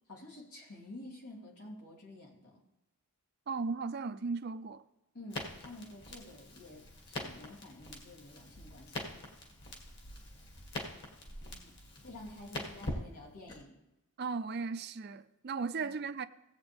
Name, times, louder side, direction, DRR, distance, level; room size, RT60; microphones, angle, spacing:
voice 1, 0.1-2.6 5.1-9.2 11.4-11.8 12.0-13.8 15.8-16.0, left 1 dB, 90° left, 3.1 m, -50 dB
voice 2, 3.5-4.8 14.2-16.3, right 4 dB, 45° right, 0.4 m, -36 dB
Crackle, 5.3-13.6, left 1 dB, 50° left, 2.0 m, -44 dB
17.5 x 8.1 x 3.5 m
head